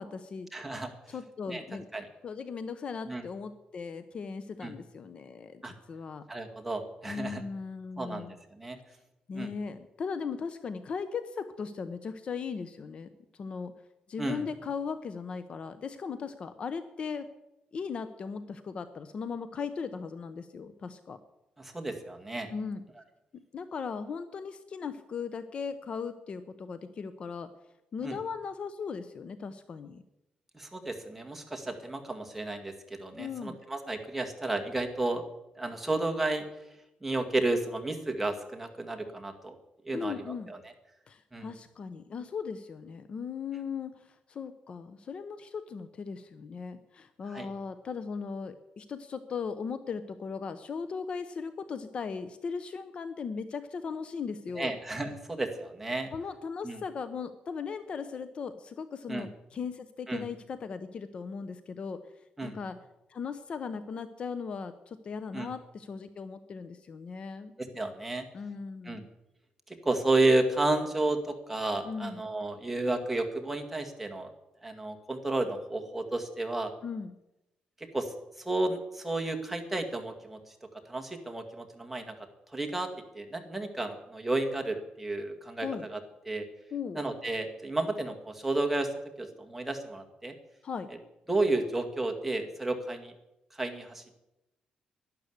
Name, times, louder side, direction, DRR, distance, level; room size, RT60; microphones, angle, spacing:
voice 1, 0.0-0.5 1.1-1.9 2.2-5.6 5.9-6.2 7.1-8.3 9.3-13.7 14.1-17.3 17.7-21.2 22.5-22.8 23.5-27.5 27.9-30.0 33.2-33.6 39.9-40.5 41.1-54.7 56.1-62.0 62.4-62.8 63.1-67.5 68.3-69.0 71.8-72.3 76.8-77.1 85.6-85.9 86.7-87.0 90.6-90.9, left 5 dB, 45° left, 12 dB, 0.8 m, -38 dB
voice 2, 0.5-0.9 1.5-1.6 1.9-2.1 3.1-3.2 4.6-4.7 5.6-5.7 6.3-7.4 8.0-8.8 9.3-9.5 14.2-14.5 21.6-22.5 28.0-28.2 30.5-35.2 35.6-36.5 37.0-39.5 39.8-40.6 41.3-41.5 47.3-47.5 54.6-56.1 56.6-56.8 59.1-59.3 60.1-60.2 62.4-62.5 65.3-65.5 67.6-68.2 68.9-69.0 69.7-74.3 74.6-76.7 77.9-80.5 80.9-82.1 82.5-86.0 86.3-86.5 87.0-88.9 89.2-90.3 91.3-93.1 93.5-94.0, right 2 dB, 5° right, 2 dB, 2.0 m, -32 dB
12.0 x 11.5 x 8.0 m, 0.92 s
cardioid pair, 145°, 3 cm